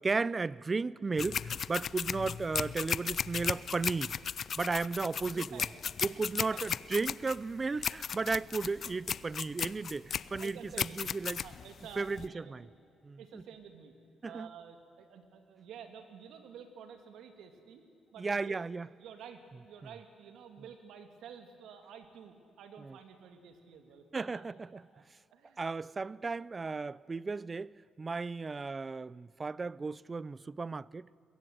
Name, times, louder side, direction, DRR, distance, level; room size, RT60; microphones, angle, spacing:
voice 1, 0.0-4.1 4.6-5.6 6.0-11.4 12.0-12.7 13.0-13.4 14.2-14.5 18.2-18.9 22.8-23.0 24.1-24.8 25.6-31.1, right 4 dB, 30° right, 0.5 m, -35 dB
sound 1, 1.2-12.3, left 7 dB, 55° left, 0.6 m, -36 dB
voice 2, 5.3-5.7 6.1-6.8 10.2-11.1 11.4-12.7 13.2-13.9 14.2-17.8 18.1-18.6 19.0-24.4 24.9-25.0 25.3-25.6, right 7 dB, 80° right, 2.7 m, -51 dB
22.5 x 21.5 x 9.4 m
cardioid pair, 90°, 0 cm